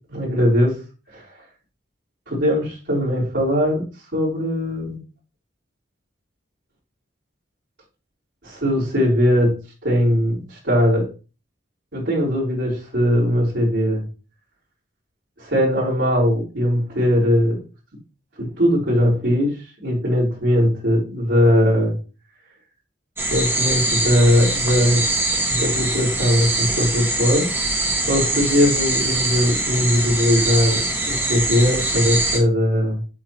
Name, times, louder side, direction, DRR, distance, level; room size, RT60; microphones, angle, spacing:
voice 1, 0.1-0.8 1.1-1.2 2.3-3.8 4.1-5.0 8.4-9.6 9.8-11.1 11.9-14.0 15.4-17.6 18.4-19.6 19.8-21.9 23.3-25.0 25.4-27.5 28.1-30.8 31.1-33.0, equal, 70° right, -6 dB, 3.6 m, -19 dB
sound 1, 23.2-32.4, right 2 dB, 10° right, 1.2 m, -23 dB
8.2 x 3.8 x 3.0 m, 0.33 s
head